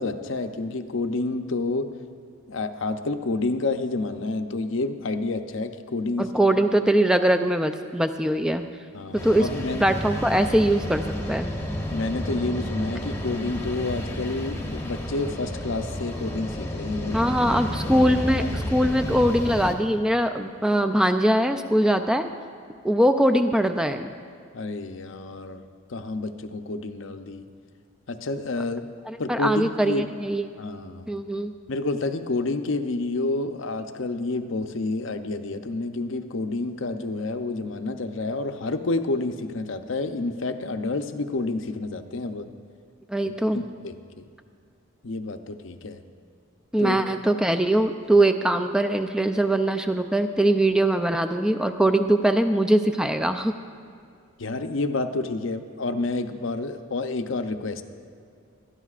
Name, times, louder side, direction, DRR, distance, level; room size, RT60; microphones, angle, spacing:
voice 1, 0.0-2.0 2.5-6.3 8.9-9.8 11.9-18.1 18.4-18.5 24.5-25.6 25.9-27.4 28.1-28.8 29.2-30.1 30.6-31.0 31.7-42.5 43.3-44.3 45.0-46.0 46.8-47.0 54.4-57.8, left 3 dB, 70° left, 8 dB, 0.6 m, -29 dB
voice 2, 6.2-8.7 9.1-9.5 9.8-11.5 17.1-22.3 22.8-24.1 29.1-30.5 31.1-31.5 43.1-43.6 46.7-53.5, right 1 dB, 5° right, 8 dB, 0.4 m, -22 dB
sound 1, 9.2-19.7, equal, 15° left, 0.9 m, -31 dB
21.0 x 13.0 x 2.5 m, 2.4 s
head